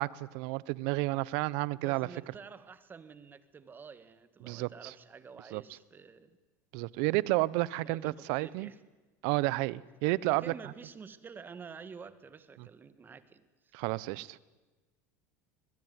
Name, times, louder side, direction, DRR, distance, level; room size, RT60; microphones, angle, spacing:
voice 1, 0.0-2.1 4.4-4.7 5.5-5.6 6.7-8.7 9.2-10.5 13.7-14.4, right 21 dB, 70° right, 0.9 m, -31 dB
voice 2, 1.8-6.4 7.7-8.8 10.0-13.7, right 5 dB, 25° right, 1.8 m, -49 dB
22.0 x 21.5 x 9.6 m
supercardioid pair, 110°, 8 cm